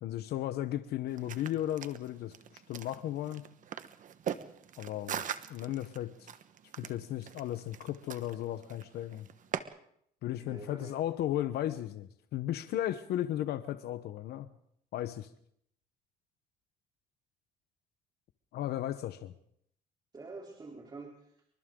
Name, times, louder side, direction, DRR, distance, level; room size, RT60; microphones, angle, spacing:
voice 1, 0.0-3.4 4.8-5.2 5.5-6.3 6.8-9.3 10.2-14.5 14.9-15.3 18.5-19.3, left 12 dB, 75° left, 11 dB, 1.1 m, -35 dB
sound 1, 1.1-9.6, right 9 dB, 50° right, 1.3 m, -42 dB
voice 2, 10.4-11.0 20.1-21.5, right 3 dB, 25° right, -1 dB, 3.7 m, -47 dB
28.0 x 24.0 x 3.9 m, 0.71 s
cardioid pair, 110°, 17 cm